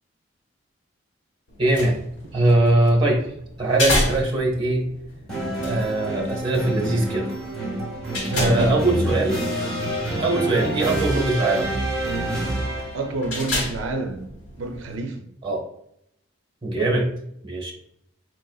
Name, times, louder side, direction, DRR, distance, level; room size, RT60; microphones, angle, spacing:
sound 1, 1.5-15.0, left 1 dB, 80° left, 1.2 m, -32 dB
voice 1, 1.6-2.0 2.3-3.3 3.6-4.9 5.6-7.3 8.3-9.4 10.2-11.7 15.4-15.6 16.6-17.1 17.4-17.7, right 2 dB, 25° right, 0.9 m, -21 dB
sound 2, 5.3-13.1, right 1 dB, 5° left, 1.2 m, -27 dB
voice 2, 8.3-8.8 12.9-14.3 14.6-15.2, right 2 dB, 75° right, 0.4 m, -28 dB
4.5 x 3.7 x 2.3 m
head